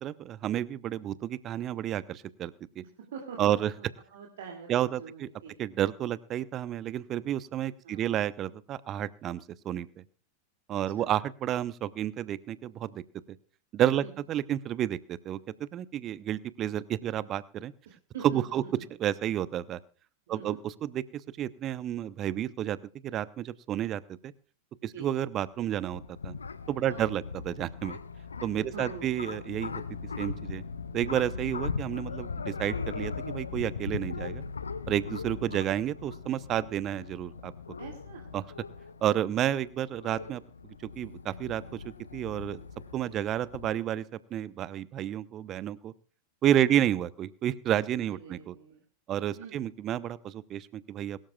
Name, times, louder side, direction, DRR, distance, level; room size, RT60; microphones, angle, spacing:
voice 1, 0.0-2.8 3.4-3.7 4.7-5.3 5.6-9.9 10.7-13.0 13.7-17.7 18.2-18.6 19.0-19.8 20.3-22.8 23.0-24.3 24.8-26.3 26.7-28.0 28.4-29.8 30.2-30.6 30.9-34.4 34.9-37.5 38.3-38.4 39.0-40.4 41.0-42.6 42.9-44.0 44.3-45.9 46.4-48.5 49.1-51.2, right 11 dB, 30° right, 19 dB, 0.8 m, -30 dB
voice 2, 3.1-3.9 4.1-5.6 7.8-8.2 10.9-11.1 14.0-14.1 17.9-18.7 20.3-20.6 24.9-25.1 26.9-27.1 28.5-29.2 37.8-38.3 46.6-46.8 48.1-48.8 49.4-49.6, right 6 dB, 60° right, 1 dB, 2.4 m, -45 dB
sound 1, 25.5-43.7, left 5 dB, 75° left, 0.8 m, -39 dB
22.0 x 13.0 x 2.3 m, 0.40 s
figure-of-eight pair, 90°, 0 cm